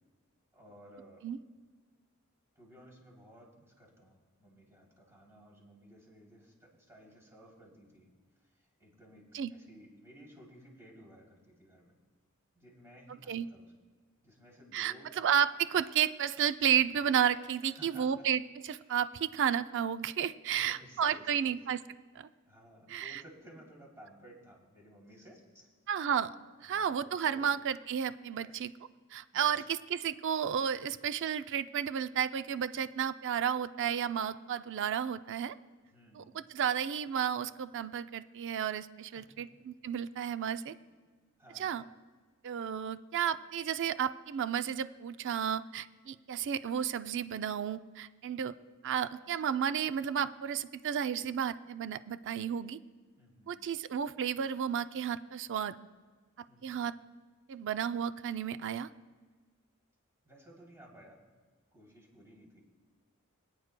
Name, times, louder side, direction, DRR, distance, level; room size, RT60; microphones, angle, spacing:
voice 1, 0.5-1.2 2.5-12.0 12.5-13.7 14.2-15.1 17.6-18.3 20.5-21.5 22.4-25.7 26.6-27.5 28.4-28.6 29.3-29.7 35.9-36.3 39.1-39.5 40.7-40.8 41.4-41.8 53.2-53.5 56.5-56.8 60.2-61.2 61.7-62.6, equal, 15° right, -3 dB, 3.1 m, -56 dB
voice 2, 14.7-21.8 22.2-22.3 22.9-23.2 25.9-26.3 26.6-28.7 29.1-35.6 36.2-40.7 41.6-41.8 42.4-48.5 48.8-52.8 53.5-55.8 56.6-56.9 57.5-58.9, right 8 dB, 60° right, 12 dB, 0.4 m, -32 dB
25.5 x 9.4 x 2.2 m, 1.4 s
head